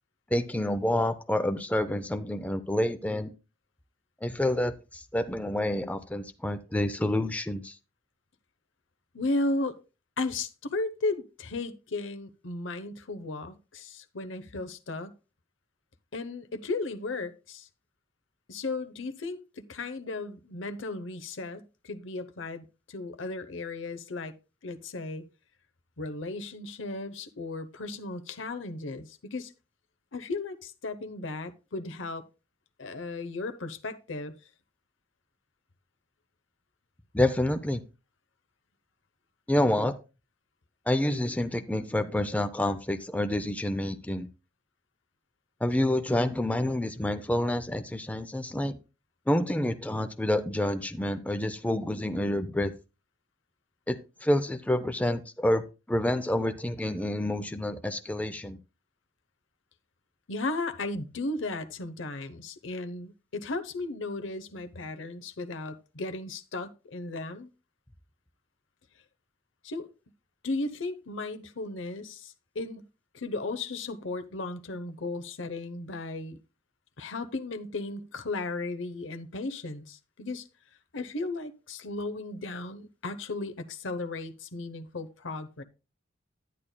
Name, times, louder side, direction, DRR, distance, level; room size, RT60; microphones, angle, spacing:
voice 1, 0.3-3.3 4.2-7.8 37.1-37.8 39.5-39.9 40.9-44.3 45.6-48.7 49.3-52.7 53.9-55.6 55.9-58.6, left 1 dB, 10° left, 0.5 m, -28 dB
voice 2, 9.1-9.8 10.2-15.2 16.1-17.7 18.5-24.3 24.6-25.3 26.0-29.5 30.1-32.3 32.8-34.3 60.3-67.5 69.6-69.9 70.4-72.9 73.1-76.4 77.0-80.4 80.9-85.6, left 2 dB, 75° left, 0.9 m, -35 dB
11.0 x 9.9 x 2.2 m
head